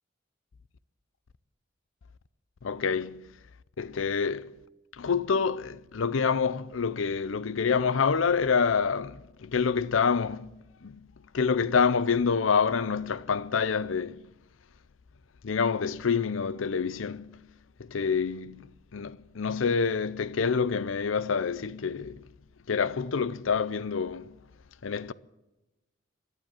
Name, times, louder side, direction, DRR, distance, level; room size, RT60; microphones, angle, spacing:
voice 1, 2.6-3.2 3.8-4.5 5.0-11.0 11.3-14.2 15.4-17.4 17.8-22.2 22.7-24.4 24.8-25.1, left 5 dB, 85° left, 0.6 m, -27 dB
14.0 x 11.5 x 9.1 m
head